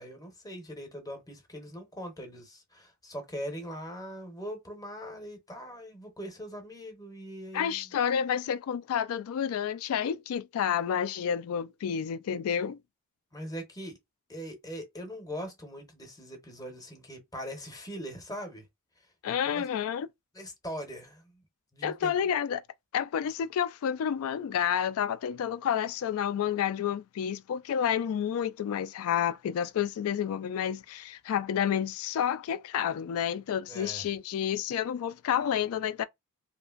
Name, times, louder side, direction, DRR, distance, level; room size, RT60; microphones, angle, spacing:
voice 1, 0.0-7.8 13.3-14.0 14.3-18.6 19.5-19.6 20.3-21.3 21.7-22.1 33.7-34.1, equal, 15° left, 0.7 m, -41 dB
voice 2, 7.5-12.8 19.2-20.1 21.8-22.6 22.9-36.0, left 8 dB, 65° left, 0.3 m, -30 dB
2.8 x 2.5 x 2.4 m
head